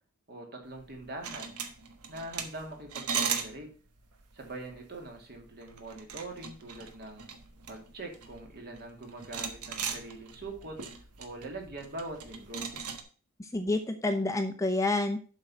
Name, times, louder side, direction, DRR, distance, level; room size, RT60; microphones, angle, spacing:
voice 1, 0.3-1.6 2.1-3.7 4.3-7.3 7.7-12.7, right 2 dB, 45° right, 2 dB, 2.3 m, -43 dB
sound 1, 0.8-13.0, right 6 dB, 85° right, 1.3 m, -39 dB
voice 2, 13.4-15.2, left 2 dB, 15° left, 5 dB, 0.7 m, -28 dB
7.6 x 5.6 x 6.1 m, 0.39 s
head